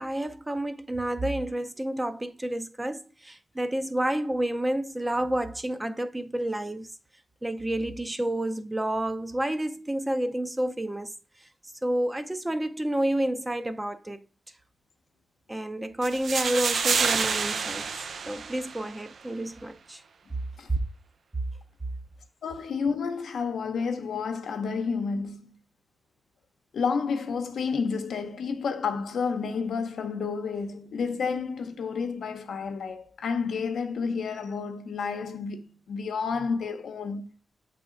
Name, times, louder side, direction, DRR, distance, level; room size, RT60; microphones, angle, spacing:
voice 1, 0.0-6.9 7.4-11.1 11.8-14.3 15.5-17.9 18.3-20.0 20.7-20.8, right 1 dB, 15° right, 0.6 m, -29 dB
sound 1, 16.0-19.0, right 5 dB, 70° right, 0.5 m, -28 dB
voice 2, 22.4-25.5 26.7-37.2, left 5 dB, 85° left, 0.7 m, -30 dB
7.7 x 3.5 x 3.7 m
cardioid pair, 90°, 0 cm